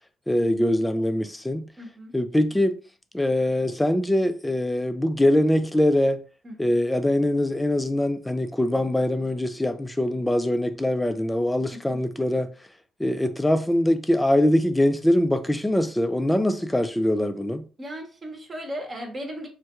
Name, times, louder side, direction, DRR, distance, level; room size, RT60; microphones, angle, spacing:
voice 1, 0.3-1.7 2.1-2.8 3.1-6.2 6.6-12.5 13.0-17.6, left 1 dB, 10° left, 0.4 m, -23 dB
voice 2, 1.8-2.1 6.4-6.8 11.9-12.0 17.8-19.5, equal, 35° right, 0.9 m, -37 dB
3.4 x 2.2 x 2.9 m
cardioid pair, 90°, 0 cm